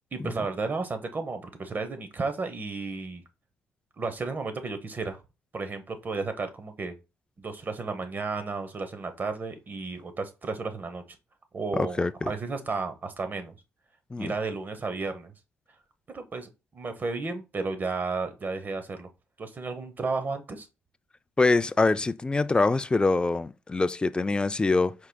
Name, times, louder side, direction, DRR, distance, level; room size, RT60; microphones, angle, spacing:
voice 1, 0.1-3.2 4.0-5.2 5.5-6.9 7.4-11.0 11.5-13.5 14.2-15.3 16.1-19.1 19.4-20.7, right 4 dB, 40° right, 0.9 m, -33 dB
voice 2, 11.7-12.3 14.1-14.3 21.4-24.9, left 3 dB, 20° left, 0.3 m, -24 dB
4.7 x 4.6 x 2.3 m
cardioid pair, 75°, 5 cm